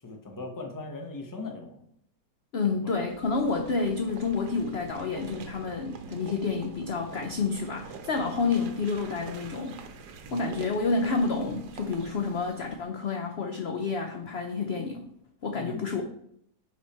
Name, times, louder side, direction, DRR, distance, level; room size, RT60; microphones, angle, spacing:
voice 1, 0.0-1.8 2.9-3.0 10.3-10.5 15.5-15.9, left 3 dB, 15° left, 3 dB, 0.7 m, -39 dB
voice 2, 2.5-9.8 10.3-15.1 15.4-16.0, left 4 dB, 55° left, 4 dB, 0.7 m, -29 dB
sound 1, 2.8-12.8, right 4 dB, 85° right, 1.4 m, -45 dB
5.8 x 5.3 x 4.2 m, 0.71 s
omnidirectional pair, 1.7 m